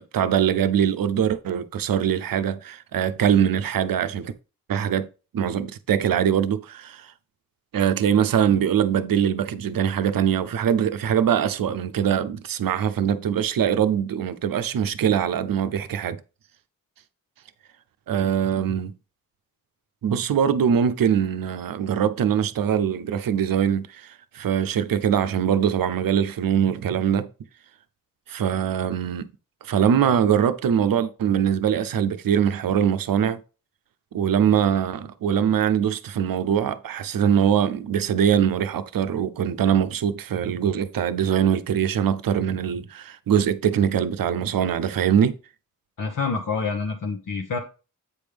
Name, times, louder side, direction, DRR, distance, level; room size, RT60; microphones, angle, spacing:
voice 1, 0.0-4.3 4.7-5.1 5.3-7.1 7.7-16.2 18.1-18.9 20.0-27.3 28.3-29.3 29.6-33.4 34.1-45.4, right 8 dB, 80° right, 0.6 m, -22 dB
voice 2, 46.0-47.6, left 4 dB, 70° left, 1.0 m, -27 dB
8.4 x 5.2 x 3.4 m
wide cardioid pair, 105°, 34 cm